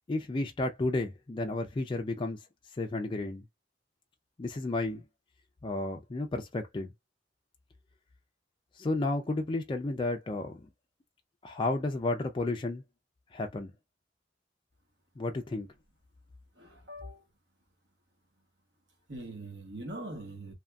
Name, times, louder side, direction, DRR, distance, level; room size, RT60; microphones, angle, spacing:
voice 1, 0.1-2.4 2.8-3.4 4.4-5.0 5.6-6.9 8.8-10.6 11.4-12.8 13.3-13.7 15.2-15.7, left 2 dB, 25° left, 0.4 m, -32 dB
voice 2, 16.6-17.2 19.1-20.5, right 1 dB, 65° right, 1.1 m, -42 dB
2.8 x 2.5 x 2.2 m
head